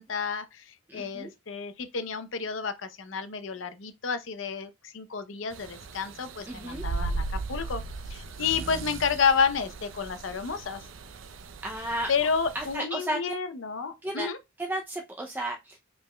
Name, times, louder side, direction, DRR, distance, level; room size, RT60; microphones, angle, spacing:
voice 1, 0.0-7.2 7.5-7.8 8.1-10.8 12.1-14.4, left 5 dB, 75° left, 0.6 m, -30 dB
voice 2, 0.9-1.3 6.5-6.8 11.6-12.1 12.5-13.2 14.0-14.3 14.6-15.8, right 1 dB, 10° right, 0.4 m, -33 dB
sound 1, 5.5-12.8, right 3 dB, 75° right, 0.5 m, -37 dB
5.1 x 3.4 x 2.2 m
head